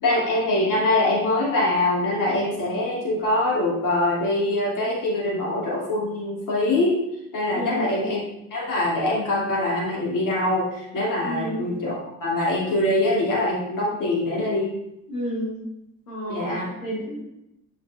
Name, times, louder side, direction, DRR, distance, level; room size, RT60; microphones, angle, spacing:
voice 1, 0.0-7.0 7.3-8.2 8.5-11.9 12.2-14.7 16.3-16.7, left 1 dB, 45° left, -4 dB, 2.6 m, -23 dB
voice 2, 7.5-7.9 11.2-11.6 15.1-15.5 16.1-16.6 16.8-17.2, equal, 75° left, -7 dB, 1.9 m, -30 dB
10.0 x 4.5 x 2.5 m, 0.85 s
figure-of-eight pair, 45°, 44 cm